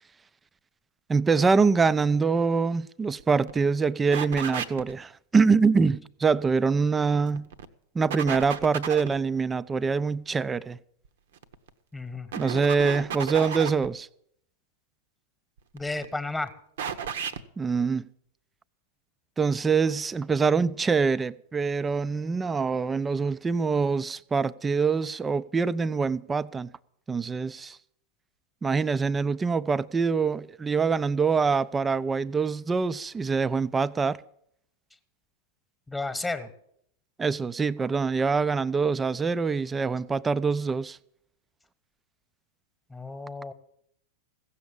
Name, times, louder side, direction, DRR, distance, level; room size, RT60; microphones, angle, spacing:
voice 1, 1.1-7.5 7.9-10.8 12.4-14.1 17.6-18.1 19.4-26.7 27.1-27.8 28.6-34.2 37.2-41.0, right 5 dB, 15° right, 0.4 m, -24 dB
sound 1, 3.2-3.3 3.5-3.6 4.1-4.9 7.1-7.7 8.1-9.2 11.4-11.7 12.3-13.9 15.6-16.1 16.8-17.4, right 7 dB, 60° right, 0.8 m, -33 dB
voice 2, 11.9-12.3 15.7-16.5 35.9-36.5 42.9-43.5, left 3 dB, 10° left, 1.3 m, -32 dB
16.0 x 7.0 x 8.5 m
figure-of-eight pair, 90°, 0 cm